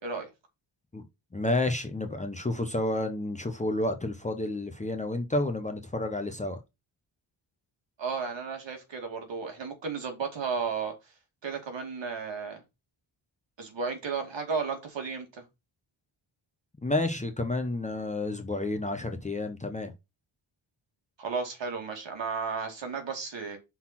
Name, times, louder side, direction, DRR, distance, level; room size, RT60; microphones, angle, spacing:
voice 1, 1.3-6.6 16.8-19.9, left 2 dB, 15° left, 0.8 m, -30 dB
voice 2, 8.0-10.9 11.4-12.6 13.6-15.4 21.2-23.6, right 5 dB, 65° right, 2.4 m, -33 dB
5.8 x 4.1 x 5.8 m
wide cardioid pair, 170°, 47 cm